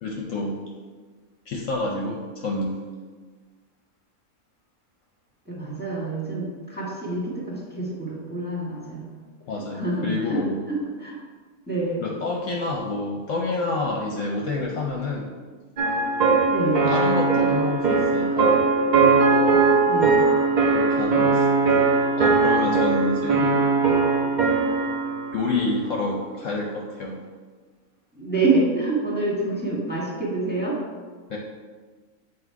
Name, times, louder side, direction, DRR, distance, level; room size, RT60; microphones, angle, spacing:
voice 1, 0.0-0.6 1.5-2.7 9.5-10.6 12.0-15.3 16.9-18.7 20.7-21.5 22.2-23.4 25.3-27.2 31.3-31.4, left 2 dB, 65° left, -1 dB, 0.9 m, -28 dB
voice 2, 5.4-9.1 9.7-10.4 10.7-11.2 11.7-12.0 16.4-16.8 19.8-20.2 23.4-23.7 28.1-30.8, right 3 dB, 5° left, -5 dB, 1.6 m, -27 dB
sound 1, 15.8-25.2, right 4 dB, 45° right, 0.6 m, -20 dB
8.0 x 2.7 x 4.6 m, 1.5 s
omnidirectional pair, 1.6 m